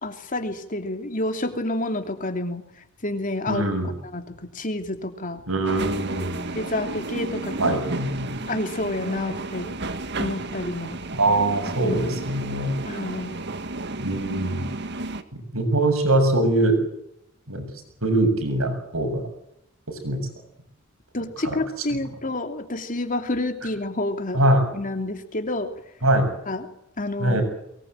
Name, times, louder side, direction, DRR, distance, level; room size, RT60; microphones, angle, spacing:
voice 1, 0.0-2.6 3.0-3.6 4.1-5.4 6.5-7.7 8.5-9.7 10.2-11.0 11.8-12.0 12.9-13.4 21.1-24.4 24.7-25.7 26.5-26.7 27.0-27.4, left 2 dB, 40° left, 6 dB, 2.9 m, -29 dB
voice 2, 3.5-3.9 5.5-6.4 7.6-8.3 11.2-12.8 14.0-14.7 15.3-16.8 17.5-17.7 18.0-19.2 19.9-20.2 21.4-21.6 24.3-24.6 26.0-26.3 27.2-27.4, right 1 dB, 90° right, 7 dB, 7.3 m, -22 dB
sound 1, 5.6-15.2, right 2 dB, 55° right, 1.8 m, -33 dB
23.0 x 20.5 x 9.1 m, 0.79 s
head